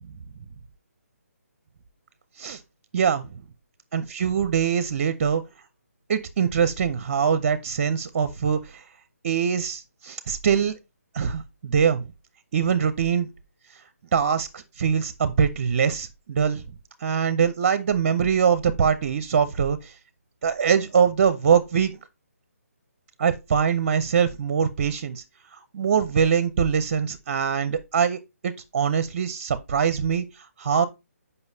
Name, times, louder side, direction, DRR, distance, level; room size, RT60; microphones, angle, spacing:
voice 1, 2.9-3.4 3.9-5.4 6.1-8.8 9.2-10.8 11.1-12.1 12.5-13.3 14.1-16.6 17.0-19.9 20.4-21.9 23.2-25.2 25.5-30.8, right 7 dB, 40° right, 0.7 m, -23 dB
7.9 x 5.5 x 2.7 m
hypercardioid pair, 160°, 8 cm